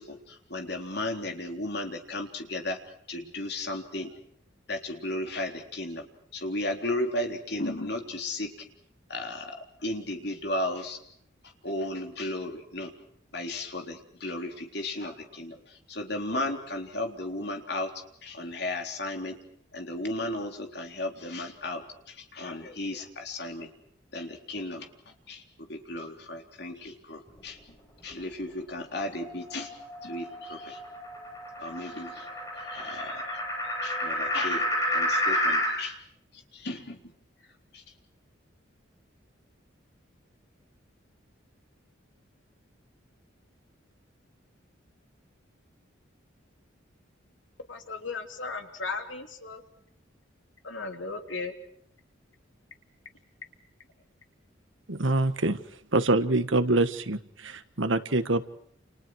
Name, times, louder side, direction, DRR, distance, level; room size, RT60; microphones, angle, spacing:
voice 1, 0.0-2.8 3.1-4.1 4.7-6.0 6.3-8.5 9.1-11.0 11.6-12.9 13.3-17.9 18.2-19.4 19.7-23.7 24.1-24.9 25.3-25.4 25.7-27.6 28.0-29.7 30.0-30.8 31.6-32.3 32.6-33.4 33.8-36.0 36.5-37.0 37.7-37.8, left 1 dB, 55° left, 3 dB, 3.7 m, -34 dB
sound 1, 29.1-35.8, equal, 15° left, 6.0 m, -30 dB
voice 2, 47.7-49.6 50.6-51.5, left 4 dB, 75° left, 4 dB, 3.4 m, -36 dB
voice 3, 54.9-55.6 55.9-58.5, right 2 dB, 75° right, 11 dB, 1.5 m, -25 dB
29.5 x 29.5 x 4.8 m, 0.68 s
head